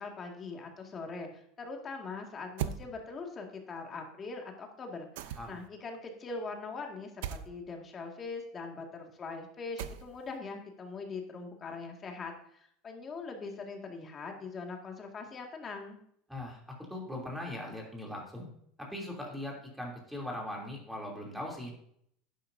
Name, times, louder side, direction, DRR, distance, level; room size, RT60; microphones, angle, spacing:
voice 1, 0.0-16.0, left 4 dB, 25° left, 2 dB, 2.0 m, -42 dB
sound 1, 2.6-2.8 5.2-5.7 7.2-7.5 9.8-10.3, right 10 dB, 80° right, 0.6 m, -37 dB
voice 2, 16.3-16.6 16.9-18.5 18.8-21.8, left 1 dB, ahead, -2 dB, 3.0 m, -40 dB
11.0 x 10.5 x 2.7 m, 0.69 s
supercardioid pair, 145°, 0 cm